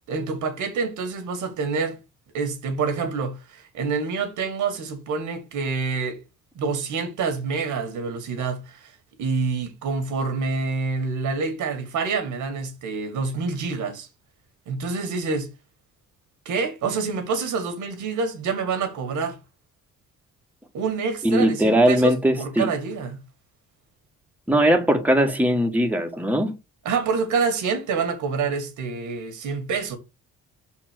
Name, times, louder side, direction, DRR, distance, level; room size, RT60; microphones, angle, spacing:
voice 1, 0.1-2.0 2.3-6.2 6.6-8.9 9.2-14.1 14.7-15.5 16.5-19.4 20.7-23.2 26.9-30.0, right 4 dB, 80° right, 1.9 m, -27 dB
voice 2, 21.2-22.7 24.5-26.5, equal, 5° right, 1.4 m, -20 dB
5.7 x 4.4 x 6.1 m
cardioid pair, 90°, 30 cm